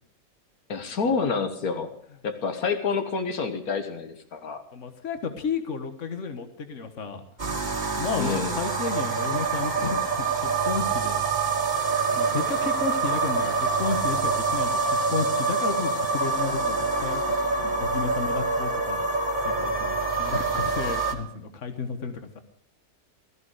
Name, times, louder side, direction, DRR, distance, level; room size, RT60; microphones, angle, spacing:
voice 1, 0.7-1.9 2.2-4.6 8.2-8.6, left 5 dB, 90° left, 7 dB, 1.9 m, -28 dB
voice 2, 4.7-7.2 8.0-11.2 12.1-19.2 19.4-22.4, left 5 dB, 60° left, 8 dB, 1.8 m, -32 dB
sound 1, 7.4-21.1, right 4 dB, 30° right, 1.6 m, -26 dB
16.0 x 14.0 x 5.0 m, 0.69 s
omnidirectional pair, 1.5 m